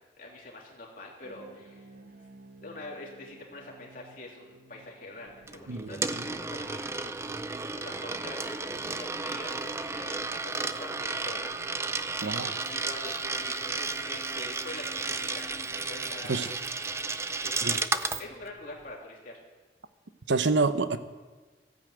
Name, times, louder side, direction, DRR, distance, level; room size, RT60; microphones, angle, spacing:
voice 1, 0.2-1.9 2.6-7.1 7.6-11.9 12.2-15.5 15.9-16.5 17.4-19.4, left 2 dB, 50° left, -2 dB, 3.2 m, -45 dB
sound 1, 1.2-16.1, right 2 dB, 45° right, 1.1 m, -51 dB
Coin (dropping), 5.5-18.2, right 3 dB, 15° right, 0.4 m, -33 dB
voice 2, 5.7-6.3 12.2-12.6 16.3-16.5 17.6-17.8 20.3-21.0, right 3 dB, 80° right, 11 dB, 0.8 m, -28 dB
14.5 x 10.0 x 8.0 m, 1.3 s
head